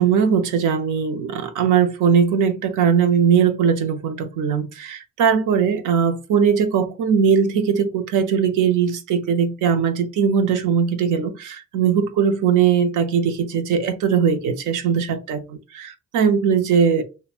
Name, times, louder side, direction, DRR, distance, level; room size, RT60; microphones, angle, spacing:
voice 1, 0.0-17.0, right 7 dB, 85° right, 0.6 m, -20 dB
3.0 x 2.2 x 2.3 m
cardioid pair, 90°, 30 cm